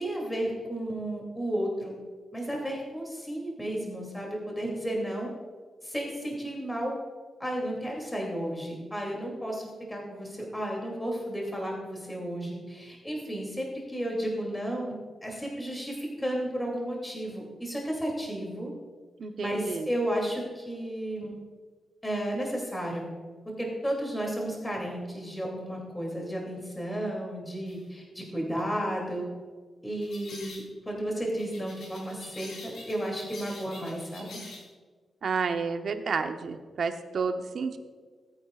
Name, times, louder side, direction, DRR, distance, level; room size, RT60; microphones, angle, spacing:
voice 1, 0.0-2.0 2.3-5.3 5.8-7.0 7.4-15.0 15.2-18.7 19.4-21.4 22.0-23.1 23.4-29.3 29.8-34.4, right 1 dB, 10° left, -1 dB, 2.7 m, -33 dB
voice 2, 19.2-19.9 35.2-37.8, right 5 dB, 65° right, 7 dB, 0.9 m, -30 dB
sound 1, 27.7-27.8 30.0-30.7 31.4-34.7, left 2 dB, 75° left, 3.6 m, -46 dB
19.0 x 9.0 x 2.4 m, 1.5 s
cardioid pair, 85°, 0 cm